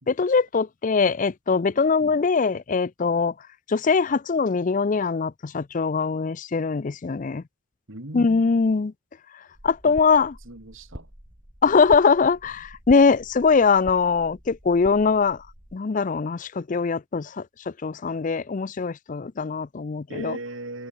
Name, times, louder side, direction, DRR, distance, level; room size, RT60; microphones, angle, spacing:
voice 1, 0.1-3.3 3.7-7.4 8.1-8.9 9.6-10.3 11.6-15.4 15.7-20.4, left 5 dB, 40° left, 0.4 m, -22 dB
voice 2, 7.9-8.5 9.8-10.0 10.5-11.1 20.1-20.9, right 2 dB, 75° right, 3.7 m, -37 dB
sound 1, 9.5-15.8, equal, 25° right, 3.3 m, -45 dB
head